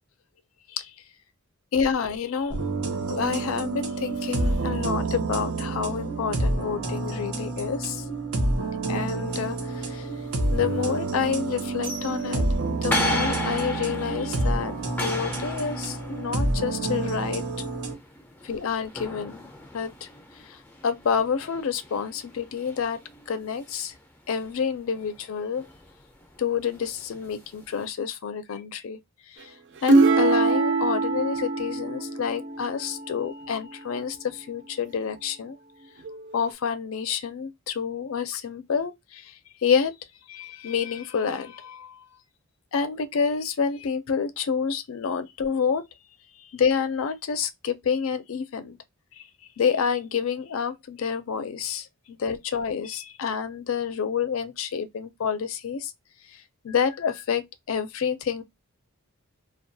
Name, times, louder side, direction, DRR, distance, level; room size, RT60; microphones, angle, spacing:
voice 1, 1.7-2.6 3.1-8.0 8.9-10.1 10.5-17.4 18.4-20.1 20.8-23.0 23.3-23.9 24.3-25.6 26.4-29.0 29.4-29.5 29.8-35.6 36.3-39.3 39.6-39.9 40.3-42.0 42.7-45.8 46.5-48.8 49.6-55.9 56.6-58.4, left 6 dB, 70° left, 0.4 m, -28 dB
sound 1, 2.5-17.9, right 2 dB, 85° right, 0.8 m, -28 dB
sound 2, 9.3-27.9, left 2 dB, 10° left, 0.4 m, -37 dB
sound 3, 29.9-33.5 36.1-36.5, right 2 dB, 55° right, 0.4 m, -23 dB
2.3 x 2.2 x 2.6 m
head